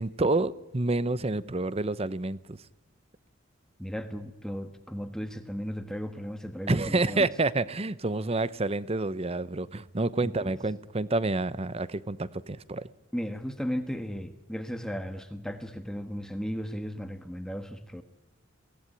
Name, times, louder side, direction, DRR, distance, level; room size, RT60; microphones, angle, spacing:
voice 1, 0.0-2.6 6.7-12.9, right 2 dB, 30° right, 0.7 m, -28 dB
voice 2, 3.8-7.3 10.2-10.5 13.1-18.0, equal, 5° left, 1.4 m, -35 dB
23.0 x 17.5 x 9.9 m
head